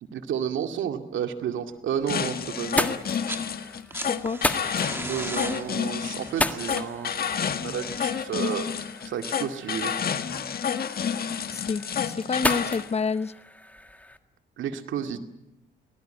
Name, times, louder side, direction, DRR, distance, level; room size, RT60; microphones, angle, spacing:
voice 1, 0.0-3.0 5.0-9.9 14.6-15.2, right 8 dB, 75° right, 7 dB, 2.2 m, -31 dB
sound 1, 1.7-2.2 2.6-14.2, left 1 dB, 5° left, 1.7 m, -34 dB
sound 2, 2.1-12.9, left 7 dB, 50° left, 1.7 m, -30 dB
sound 3, 3.0-3.5 3.8-8.6 9.9-10.0, right 2 dB, 10° right, 1.5 m, -39 dB
voice 2, 4.1-4.4 11.5-13.3, left 5 dB, 30° left, 15 dB, 0.8 m, -28 dB
23.5 x 19.0 x 9.1 m, 0.88 s
cardioid pair, 90°, 20 cm